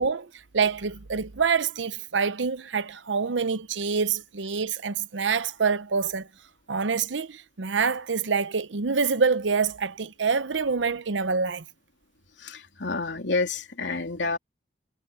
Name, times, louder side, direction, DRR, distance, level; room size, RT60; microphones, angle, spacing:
voice 1, 0.0-6.3 6.7-11.6, right 5 dB, 90° right, 0.8 m, -26 dB
voice 2, 12.4-14.4, left 3 dB, 80° left, 3.0 m, -29 dB
head